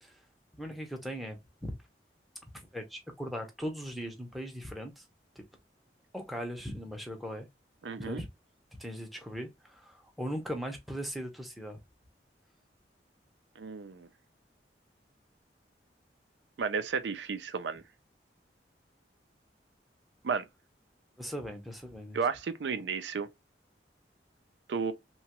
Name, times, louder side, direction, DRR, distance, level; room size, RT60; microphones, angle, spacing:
voice 1, 0.6-1.7 2.5-5.0 6.1-7.5 8.0-8.3 8.8-11.8 21.2-22.2, equal, ahead, 0.6 m, -39 dB
voice 2, 7.8-8.2 13.6-14.1 16.6-17.8 20.2-20.5 22.1-23.3 24.7-24.9, right 5 dB, 85° right, 0.4 m, -33 dB
2.9 x 2.3 x 2.8 m
head